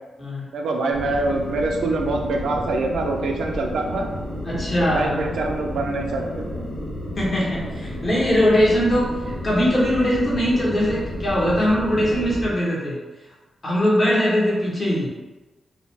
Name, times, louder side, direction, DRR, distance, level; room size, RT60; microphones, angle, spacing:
voice 1, 0.5-4.1 4.8-6.7, right 2 dB, 85° right, 2 dB, 0.4 m, -25 dB
sound 1, 0.9-12.5, left 1 dB, 90° left, 0.9 m, -31 dB
voice 2, 4.4-5.2 7.2-13.0 13.6-15.1, equal, 45° left, -6 dB, 1.0 m, -21 dB
2.4 x 2.1 x 3.1 m, 1.2 s
cardioid pair, 80°, 0 cm